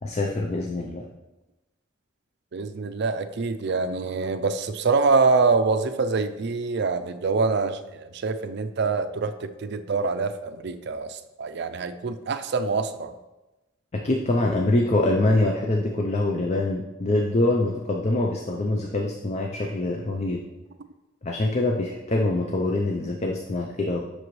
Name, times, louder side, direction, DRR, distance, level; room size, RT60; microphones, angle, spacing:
voice 1, 0.0-1.1 13.9-20.4 21.2-24.0, left 2 dB, 35° left, 1 dB, 0.5 m, -24 dB
voice 2, 2.5-13.2, right 4 dB, 60° right, 10 dB, 0.4 m, -25 dB
7.8 x 5.9 x 3.1 m, 1.0 s
head